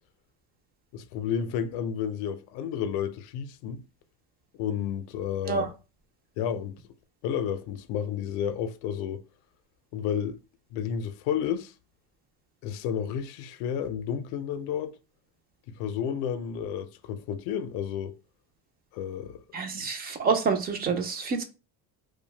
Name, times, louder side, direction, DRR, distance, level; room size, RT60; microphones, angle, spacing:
voice 1, 0.9-3.8 4.6-5.7 6.4-6.7 7.2-9.2 9.9-10.4 10.7-11.7 12.6-14.9 15.8-18.1 18.9-19.3, left 8 dB, 70° left, 0.5 m, -31 dB
voice 2, 19.5-21.4, right 5 dB, 25° right, 0.3 m, -27 dB
2.6 x 2.1 x 3.1 m
cardioid pair, 135°, 40 cm